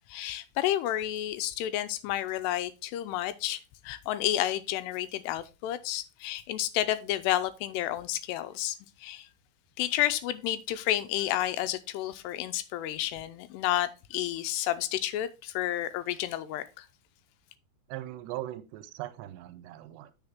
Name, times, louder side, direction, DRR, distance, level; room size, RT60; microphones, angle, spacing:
voice 1, 0.1-9.3 9.8-16.9, left 13 dB, 90° left, 2.8 m, -31 dB
voice 2, 17.9-20.1, right 14 dB, 90° right, 2.9 m, -39 dB
7.9 x 5.7 x 3.6 m
omnidirectional pair, 4.8 m